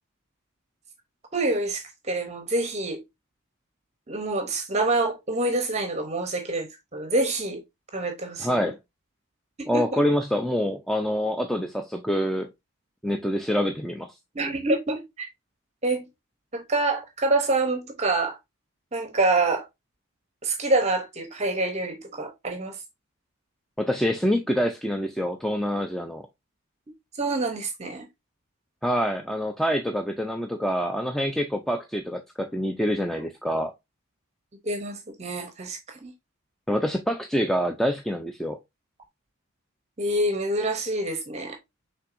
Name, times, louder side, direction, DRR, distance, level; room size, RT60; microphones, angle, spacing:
voice 1, 1.3-3.0 4.1-7.6 7.9-8.7 9.6-10.0 14.3-15.3 15.8-16.0 16.5-18.4 18.9-19.7 20.4-22.8 27.2-28.1 33.1-33.2 34.6-36.1 40.0-41.6, right 2 dB, 30° right, 0.7 m, -26 dB
voice 2, 8.4-8.8 9.7-12.5 13.0-14.1 23.8-26.3 28.8-33.7 36.7-38.6, equal, ahead, 0.3 m, -26 dB
5.7 x 3.5 x 2.5 m
head